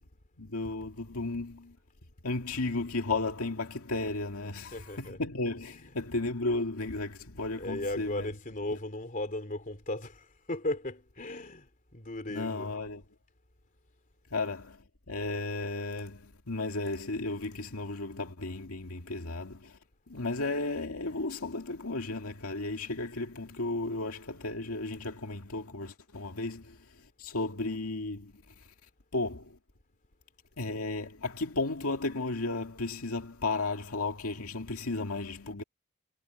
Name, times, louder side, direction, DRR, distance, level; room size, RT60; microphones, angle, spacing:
voice 1, 0.4-1.8 2.2-8.3 12.3-13.0 14.3-19.8 20.1-26.8 27.2-28.4 29.1-29.6 30.6-35.6, left 2 dB, 85° left, 2.1 m, -34 dB
voice 2, 4.7-5.2 7.6-12.7, left 1 dB, 40° left, 3.4 m, -36 dB
head